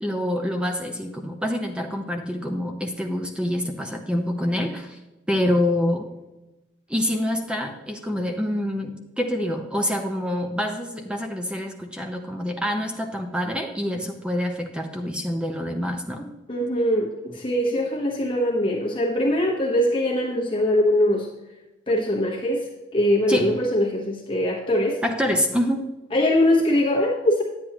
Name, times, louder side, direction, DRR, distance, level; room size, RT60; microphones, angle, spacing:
voice 1, 0.0-5.0 5.3-6.1 6.9-16.3 23.3-23.5 25.0-25.8, left 1 dB, 5° right, 3 dB, 0.6 m, -26 dB
voice 2, 16.5-21.3 21.9-25.0 26.1-27.4, left 1 dB, 30° left, -1 dB, 1.1 m, -22 dB
10.0 x 8.7 x 3.0 m, 1.0 s
head